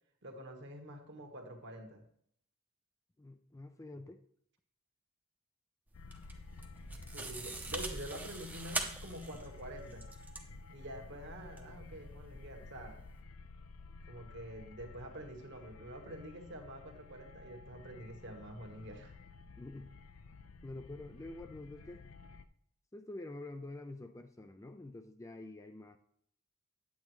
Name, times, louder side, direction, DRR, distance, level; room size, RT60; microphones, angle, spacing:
voice 1, 0.2-2.0 7.1-10.1 10.7-13.1 14.1-19.1, right 1 dB, 55° right, 1.4 m, -47 dB
voice 2, 3.2-4.2 19.6-19.9 20.6-22.0 22.9-26.0, left 2 dB, 15° left, 0.4 m, -47 dB
sound 1, 5.9-22.4, left 4 dB, 80° left, 0.5 m, -53 dB
sound 2, 5.9-13.2, right 2 dB, 10° right, 0.7 m, -44 dB
8.6 x 8.6 x 3.1 m
head